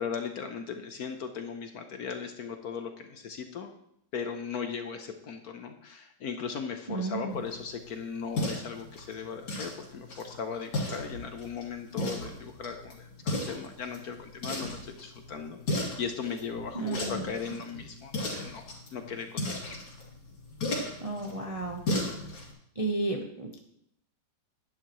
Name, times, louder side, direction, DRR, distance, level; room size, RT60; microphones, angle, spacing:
voice 1, 0.0-3.7 4.1-19.8, left 6 dB, 60° left, 6 dB, 1.1 m, -38 dB
voice 2, 6.9-7.4 16.7-17.3 21.0-21.8 22.8-23.6, right 2 dB, 30° right, 1 dB, 0.6 m, -32 dB
sound 1, 7.3-22.5, left 1 dB, 80° left, 3.3 m, -36 dB
11.0 x 10.0 x 3.1 m, 0.74 s
omnidirectional pair, 2.1 m